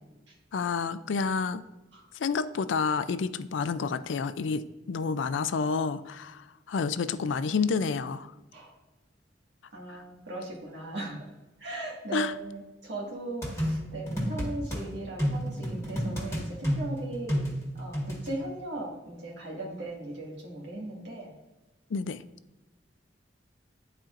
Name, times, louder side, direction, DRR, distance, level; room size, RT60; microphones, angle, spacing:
voice 1, 0.5-1.6 2.1-8.3 9.9-10.0 12.1-12.4 21.9-22.2, left 5 dB, 75° left, 13 dB, 0.4 m, -29 dB
voice 2, 9.7-11.2 11.6-17.4 17.8-21.3, right 2 dB, 65° right, -3 dB, 1.8 m, -38 dB
sound 1, 13.4-14.8 15.2-18.3, equal, 15° left, 1.8 m, -30 dB
11.5 x 4.4 x 2.5 m, 1.1 s
head